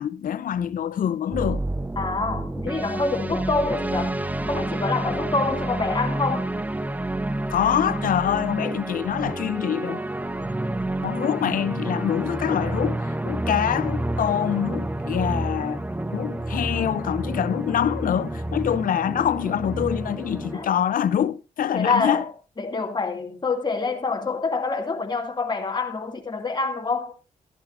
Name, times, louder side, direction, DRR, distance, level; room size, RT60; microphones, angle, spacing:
voice 1, 0.0-1.6 7.5-10.0 11.0-15.8 16.1-22.2, left 9 dB, 70° left, 0.7 m, -25 dB
sound 1, 1.3-20.7, right 1 dB, 10° right, 0.6 m, -29 dB
voice 2, 2.0-4.1 4.5-6.5 19.1-19.2 20.5-20.7 21.7-22.2 22.6-27.1, left 4 dB, 30° left, 2.4 m, -26 dB
13.0 x 11.5 x 2.6 m
cardioid pair, 85°, 15 cm